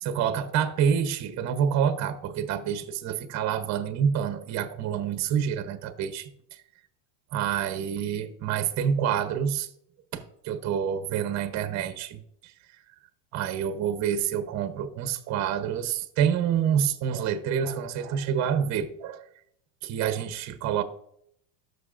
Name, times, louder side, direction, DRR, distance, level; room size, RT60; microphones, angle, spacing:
voice 1, 0.0-6.6 7.3-9.7 10.1-12.5 13.3-19.3 19.8-20.8, right 8 dB, 35° right, 0.8 m, -27 dB
13.0 x 6.4 x 2.5 m
supercardioid pair, 130°, 50 cm